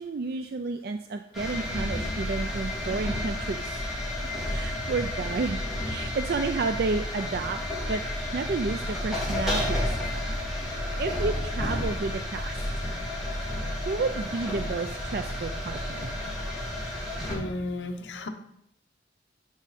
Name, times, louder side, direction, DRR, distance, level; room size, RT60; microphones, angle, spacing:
voice 1, 0.0-3.7 4.5-5.6 5.9-7.6 7.9-8.0 8.3-9.9 11.0-12.6 13.9-16.1, right 4 dB, 55° right, 7 dB, 0.4 m, -31 dB
sound 1, 1.3-17.3, left 1 dB, ahead, 2.4 m, -31 dB
voice 2, 17.3-18.3, left 2 dB, 75° left, 6 dB, 0.8 m, -33 dB
10.0 x 4.8 x 4.2 m, 0.75 s
head